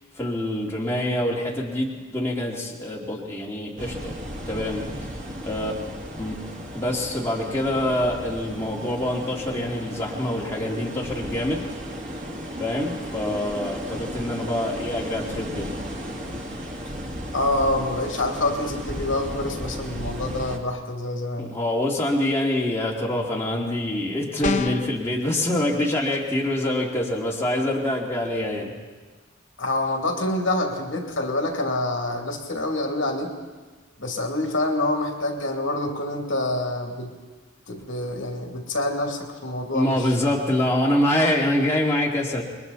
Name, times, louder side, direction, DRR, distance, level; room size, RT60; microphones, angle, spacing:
voice 1, 0.2-4.2 4.5-5.1 5.4-5.7 6.2-6.4 6.7-11.7 12.6-15.8 21.4-28.7 39.7-42.4, left 1 dB, 10° left, -4 dB, 2.7 m, -25 dB
sound 1, 3.8-20.6, equal, 35° right, 2.4 m, -35 dB
voice 2, 17.3-21.5 29.6-33.3 34.0-37.1 37.7-40.1, left 2 dB, 65° left, 2 dB, 2.7 m, -26 dB
sound 2, 24.4-25.0, left 3 dB, 35° left, 0.7 m, -25 dB
28.0 x 22.0 x 4.2 m, 1.3 s
head